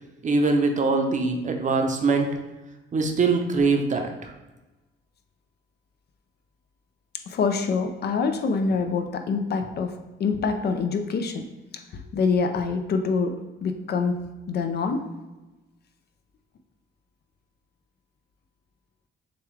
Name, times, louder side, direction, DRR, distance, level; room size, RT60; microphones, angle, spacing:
voice 1, 0.2-2.3 2.9-4.3, right 3 dB, 40° right, 4 dB, 0.7 m, -23 dB
voice 2, 7.3-11.4 11.7-14.2 14.5-15.0, left 4 dB, 55° left, 6 dB, 0.5 m, -26 dB
6.8 x 2.4 x 3.2 m, 1.1 s
cardioid pair, 90°, 20 cm